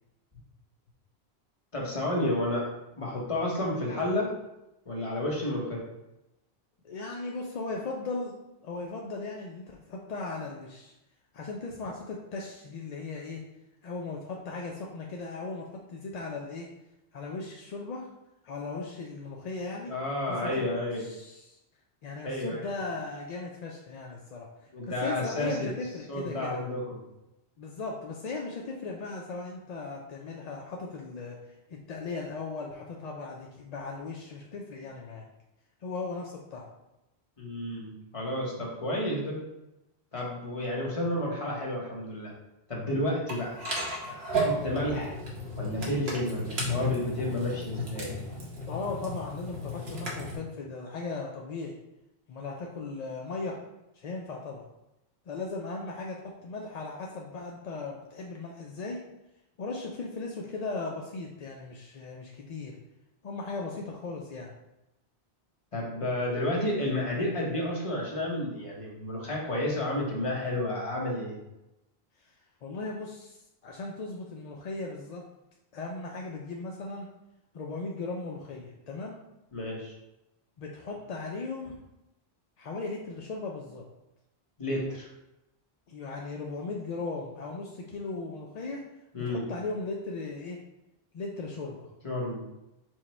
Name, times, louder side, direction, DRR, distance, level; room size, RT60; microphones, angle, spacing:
voice 1, 1.7-4.3 4.9-5.9 19.9-21.0 22.2-22.6 24.7-25.7 26.1-27.0 37.4-39.4 40.1-42.3 42.7-43.6 44.0-45.1 45.6-48.1 65.7-71.4 79.5-79.9 84.6-85.1 89.1-89.5 92.0-92.4, left 1 dB, 35° left, -3 dB, 1.0 m, -31 dB
voice 2, 6.8-10.9 11.3-13.4 13.8-16.7 17.1-18.1 18.4-19.9 20.3-20.6 21.0-21.6 22.0-24.5 24.9-26.6 27.6-31.4 31.7-35.2 35.8-36.7 48.7-51.8 52.3-53.6 53.9-54.6 55.3-59.0 59.6-62.7 63.2-64.5 72.6-75.2 75.7-77.1 77.5-79.2 80.6-81.7 82.6-83.8 85.9-88.8 89.3-90.6 91.1-91.9, left 3 dB, 55° left, -1 dB, 0.4 m, -37 dB
sound 1, 43.3-50.4, equal, 75° right, 1.2 m, -33 dB
4.7 x 2.2 x 4.1 m, 0.93 s
omnidirectional pair, 1.1 m